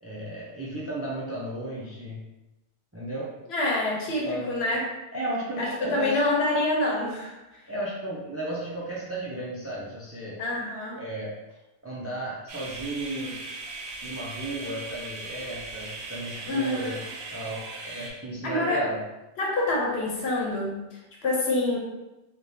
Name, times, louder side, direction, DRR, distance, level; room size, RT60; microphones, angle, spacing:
voice 1, 0.0-2.2 2.9-3.3 4.2-4.6 5.1-6.1 7.7-10.4 11.0-11.3 11.8-13.4 14.0-17.0 17.3-17.6 17.9-19.0, right 1 dB, 20° right, -5 dB, 0.4 m, -34 dB
voice 2, 3.5-4.8 5.6-7.4 10.4-11.0 16.5-17.0 18.4-18.8 19.4-21.8, left 2 dB, 75° left, -2 dB, 1.0 m, -26 dB
sound 1, 12.5-18.1, right 3 dB, 65° right, 0.7 m, -39 dB
3.3 x 2.4 x 2.6 m, 0.99 s
omnidirectional pair, 1.1 m